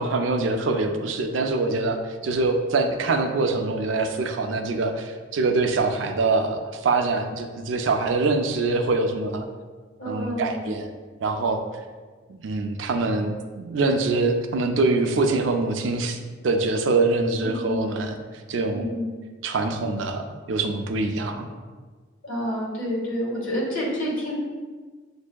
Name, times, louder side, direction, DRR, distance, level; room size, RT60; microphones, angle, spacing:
voice 1, 0.0-9.5 10.1-10.9 11.2-11.7 12.4-18.2 18.5-18.9 19.4-21.5, right 3 dB, 70° right, 6 dB, 0.4 m, -24 dB
voice 2, 10.0-10.7 17.4-18.0 18.7-19.1 22.2-24.4, equal, 85° left, -4 dB, 1.4 m, -29 dB
7.2 x 2.6 x 2.2 m, 1.4 s
head